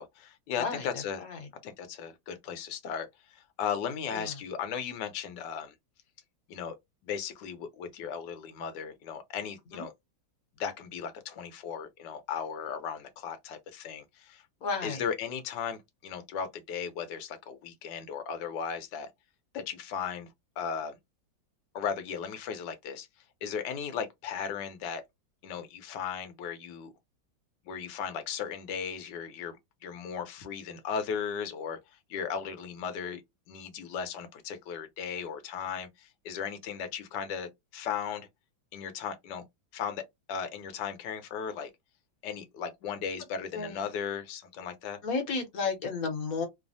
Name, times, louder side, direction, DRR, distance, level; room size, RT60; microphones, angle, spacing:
voice 1, 0.0-1.2 1.6-5.7 6.5-6.8 7.0-9.9 10.6-14.4 14.8-19.1 19.5-20.3 20.6-21.0 21.7-23.1 23.4-25.0 25.4-26.9 27.7-31.8 32.1-33.2 33.5-38.3 38.7-39.4 39.7-40.0 40.3-41.7 42.2-45.0, left 7 dB, 75° left, 1.3 m, -36 dB
voice 2, 14.6-15.0 43.5-43.8 45.0-46.5, left 4 dB, 55° left, 1.2 m, -32 dB
3.2 x 2.0 x 2.6 m
omnidirectional pair, 2.0 m